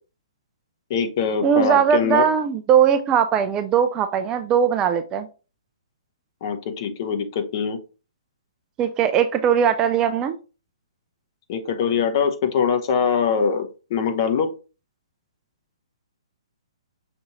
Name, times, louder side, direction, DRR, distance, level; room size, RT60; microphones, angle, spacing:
voice 1, 0.9-2.2 6.4-7.8 11.5-14.5, left 6 dB, 40° left, 7 dB, 0.8 m, -23 dB
voice 2, 1.4-5.3 8.8-10.4, right 8 dB, 20° right, 9 dB, 0.4 m, -19 dB
6.0 x 2.6 x 2.9 m, 0.32 s
figure-of-eight pair, 125°, 3 cm